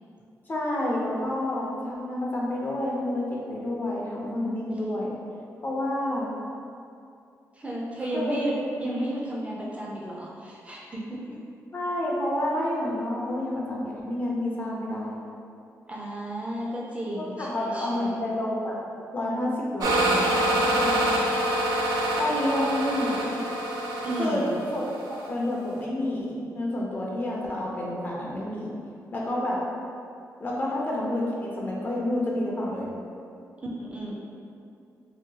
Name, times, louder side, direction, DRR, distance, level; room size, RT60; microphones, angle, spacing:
voice 1, 0.5-5.2 5.6-6.3 8.1-8.7 11.7-15.2 17.2-18.8 19.1-21.1 22.2-23.4 24.2-24.4 24.7-28.8 29.1-29.6 30.4-32.9, left 1 dB, 30° left, -4 dB, 0.5 m, -29 dB
voice 2, 7.6-8.5 8.8-11.4 15.9-18.2 24.0-24.6 33.6-34.2, right 1 dB, 20° right, -4 dB, 0.4 m, -33 dB
sound 1, 19.8-25.3, right 1 dB, 90° right, 0.4 m, -26 dB
2.8 x 2.6 x 2.7 m, 2.5 s
wide cardioid pair, 135°, 6 cm